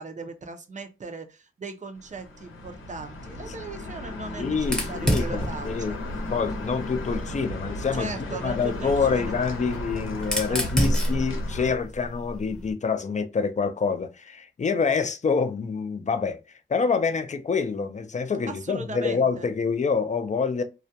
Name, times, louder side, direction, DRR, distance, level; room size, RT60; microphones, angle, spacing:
voice 1, 0.0-6.0 7.9-9.5 10.5-11.1 18.5-19.5, right 4 dB, 35° right, 0.5 m, -39 dB
sound 1, 2.0-11.7, left 2 dB, 85° left, 0.7 m, -35 dB
voice 2, 4.4-6.0 6.3-8.1 8.4-16.4 16.7-20.6, left 5 dB, 35° left, 0.4 m, -26 dB
Fire, 4.6-7.3 8.5-12.7, equal, 5° left, 0.7 m, -30 dB
2.3 x 2.1 x 2.7 m
wide cardioid pair, 85°, 20 cm